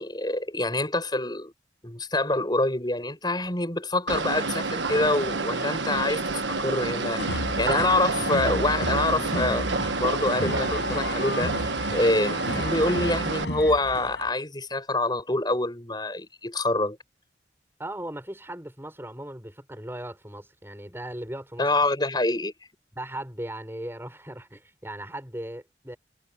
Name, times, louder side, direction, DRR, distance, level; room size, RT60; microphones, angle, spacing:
voice 1, 0.0-1.5 1.8-17.0 21.6-22.5, left 2 dB, 25° left, 7.3 m, -26 dB
sound 1, 4.1-13.4, right 3 dB, 75° right, 1.3 m, -29 dB
sound 2, 7.2-14.3, left 1 dB, 75° left, 5.8 m, -33 dB
voice 2, 17.8-21.7 22.9-26.0, right 1 dB, 15° right, 5.8 m, -38 dB
head